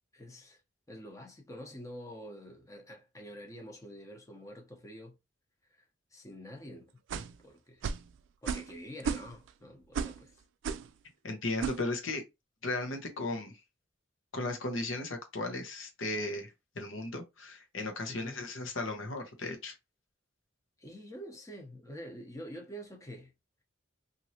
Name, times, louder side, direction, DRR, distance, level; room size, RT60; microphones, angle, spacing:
voice 1, 0.1-0.6 0.9-5.2 5.7-5.8 6.1-7.0 7.4-7.9 8.4-10.4 18.1-18.4 20.8-23.3, equal, 15° left, 0.8 m, -47 dB
sound 1, 7.1-7.4 7.8-8.1 8.5-8.7 9.0-9.5 9.9-10.2 10.6-10.9 11.6-11.8, right 6 dB, 70° right, 0.3 m, -34 dB
voice 2, 11.2-12.2 12.6-13.5 14.3-19.7, left 2 dB, 80° left, 1.0 m, -36 dB
3.0 x 2.7 x 2.8 m
head